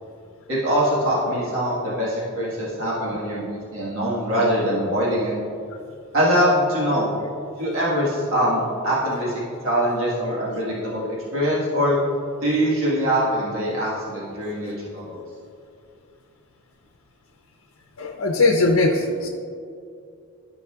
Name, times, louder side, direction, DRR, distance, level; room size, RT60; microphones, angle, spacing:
voice 1, 0.5-5.3 6.1-7.1 7.6-12.0 12.4-15.2, equal, 70° right, -7 dB, 1.6 m, -23 dB
voice 2, 18.0-19.3, left 2 dB, 90° left, 2 dB, 0.6 m, -20 dB
12.5 x 5.4 x 2.4 m, 2.4 s
head